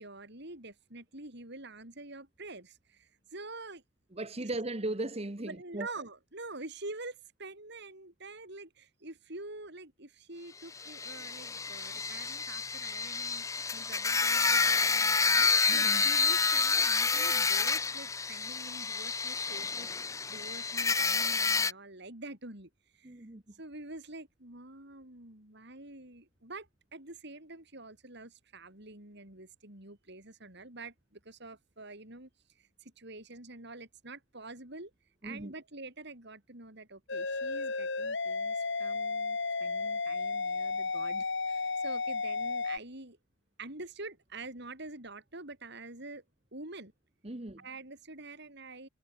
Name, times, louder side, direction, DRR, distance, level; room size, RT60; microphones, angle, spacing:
voice 1, 0.0-3.8 4.4-4.5 5.4-23.3 23.5-32.3 32.6-34.9 35.2-43.2 43.6-46.2 46.5-46.9 47.6-48.9, right 2 dB, 55° right, 5.9 m, -47 dB
voice 2, 4.1-5.9 15.7-16.1 23.0-23.4 35.2-35.5 47.2-47.6, right 2 dB, 30° right, 1.3 m, -37 dB
sound 1, 10.8-21.7, left 4 dB, 15° left, 0.6 m, -29 dB
sound 2, 37.1-42.8, left 4 dB, 65° left, 2.2 m, -33 dB
head